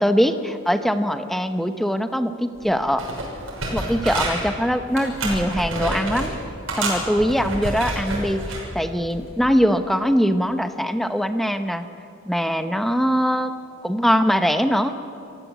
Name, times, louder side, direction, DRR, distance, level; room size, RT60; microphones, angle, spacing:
voice 1, 0.0-3.1 3.7-6.3 6.8-8.4 8.7-11.9 12.3-13.5 13.8-15.0, equal, ahead, 9 dB, 0.8 m, -22 dB
sound 1, 2.6-2.7 3.0-4.5 4.9-6.3 6.7-8.6 9.1-9.3, right 2 dB, 70° right, 6.3 m, -28 dB
28.0 x 15.5 x 8.3 m, 2.6 s
head